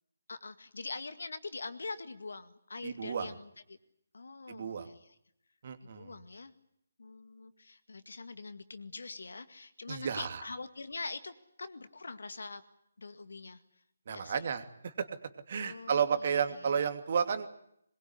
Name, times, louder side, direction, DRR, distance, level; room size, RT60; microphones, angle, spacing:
voice 1, 0.3-3.8 4.1-5.2 5.8-6.5 7.0-11.3 11.6-12.6 13.0-13.6 14.1-14.4 15.6-16.7, left 3 dB, 65° left, 11 dB, 2.0 m, -44 dB
voice 2, 2.8-3.3 4.5-4.9 5.6-6.2 9.9-10.4 14.1-15.1 15.5-17.5, right 7 dB, 45° right, 9 dB, 2.7 m, -32 dB
22.5 x 21.5 x 9.9 m, 0.74 s
figure-of-eight pair, 150°, 0 cm